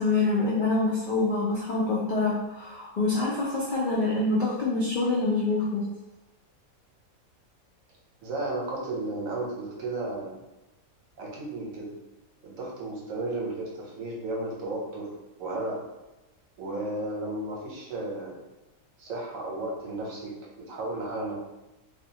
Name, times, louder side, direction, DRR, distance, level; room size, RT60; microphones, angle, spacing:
voice 1, 0.0-5.8, left 3 dB, 85° left, -5 dB, 0.4 m, -26 dB
voice 2, 8.2-10.4 11.2-11.9 12.4-15.1 15.4-15.8 16.6-18.4 19.0-21.3, right 2 dB, 70° right, -2 dB, 1.1 m, -33 dB
2.5 x 2.3 x 2.7 m, 1.0 s
omnidirectional pair, 1.5 m